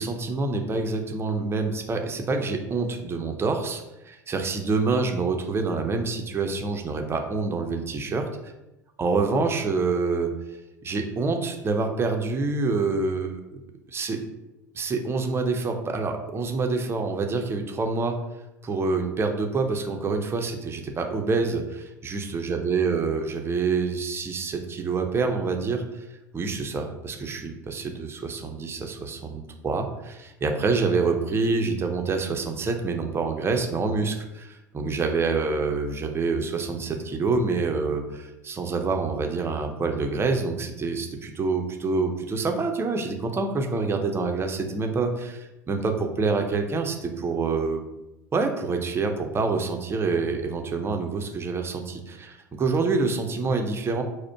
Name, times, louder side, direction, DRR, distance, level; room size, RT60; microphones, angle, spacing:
voice 1, 0.0-8.2 9.0-10.3 10.8-13.6 13.9-14.2 14.7-18.2 18.6-26.0 26.3-47.8 48.3-54.0, right 4 dB, 25° right, 4 dB, 0.7 m, -27 dB
4.8 x 2.2 x 4.6 m, 0.96 s
figure-of-eight pair, 75°, 10 cm